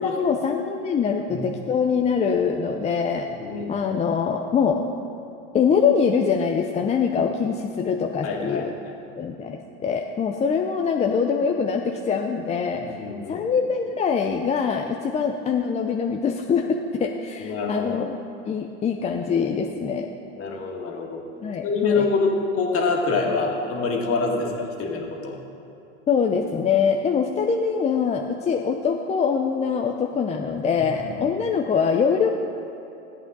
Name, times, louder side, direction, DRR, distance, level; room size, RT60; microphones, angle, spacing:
voice 1, 0.0-3.3 3.7-4.9 5.5-8.7 9.2-12.9 13.3-18.1 18.5-20.1 21.4-22.1 26.1-32.3, left 6 dB, 20° left, 2 dB, 0.5 m, -23 dB
voice 2, 3.4-3.7 8.2-9.0 12.7-13.5 17.4-17.9 20.4-21.2 21.6-25.4 31.0-31.4, left 4 dB, 40° left, 0 dB, 2.1 m, -26 dB
14.5 x 8.4 x 4.0 m, 2.9 s
hypercardioid pair, 115°, 36 cm